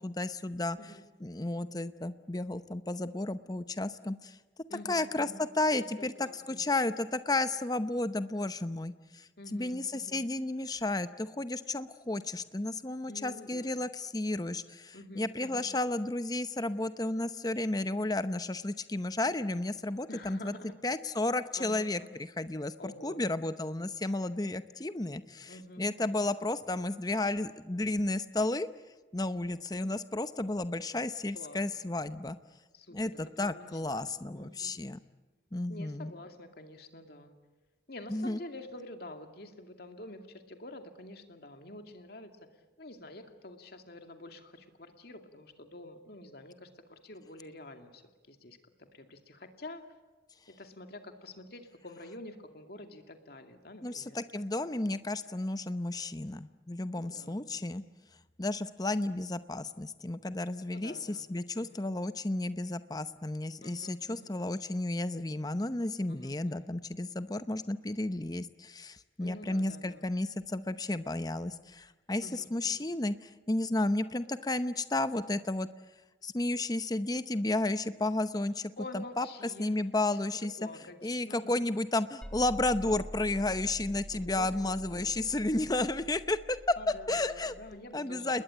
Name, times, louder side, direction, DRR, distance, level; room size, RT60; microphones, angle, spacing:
voice 1, 0.0-0.8 1.2-4.4 4.8-5.3 5.6-20.5 20.8-28.7 29.1-32.4 32.9-35.0 35.5-36.1 38.1-38.4 53.8-57.8 58.4-75.7 76.2-80.5 81.0-86.6 87.1-87.5 87.9-88.4, left 2 dB, 20° left, 12 dB, 0.8 m, -32 dB
voice 2, 4.7-5.4 5.8-6.7 9.4-10.2 13.1-13.9 14.9-15.7 20.1-20.7 21.6-22.2 22.8-23.2 25.5-26.2 31.3-31.6 32.7-34.8 35.7-37.3 37.9-42.3 42.8-49.8 50.6-54.2 56.9-57.4 60.7-61.3 61.6-61.9 63.6-64.3 66.1-66.7 69.2-70.1 72.2-72.9 78.8-81.7 84.1-85.1 86.8-88.4, left 1 dB, 55° left, 5 dB, 2.4 m, -48 dB
sound 1, 82.2-87.7, equal, 5° left, 2.0 m, -46 dB
29.5 x 21.0 x 8.9 m, 1.2 s
head